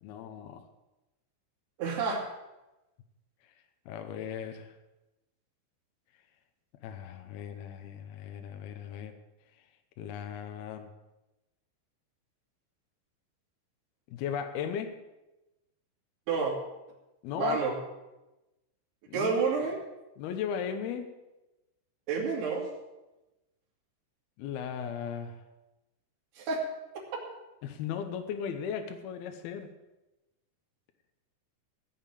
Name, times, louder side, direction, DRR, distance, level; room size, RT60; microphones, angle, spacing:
voice 1, 0.0-0.6 3.9-4.7 6.8-9.1 10.0-10.9 14.1-15.0 17.2-17.7 19.1-19.5 20.2-21.1 24.4-25.4 27.6-29.7, left 8 dB, 90° left, 6 dB, 2.1 m, -37 dB
voice 2, 1.8-2.2 16.3-16.6 17.4-17.7 19.1-19.8 22.1-22.7 26.4-26.6, right 5 dB, 55° right, -2 dB, 4.3 m, -29 dB
16.5 x 5.8 x 8.5 m, 1.0 s
omnidirectional pair, 6.0 m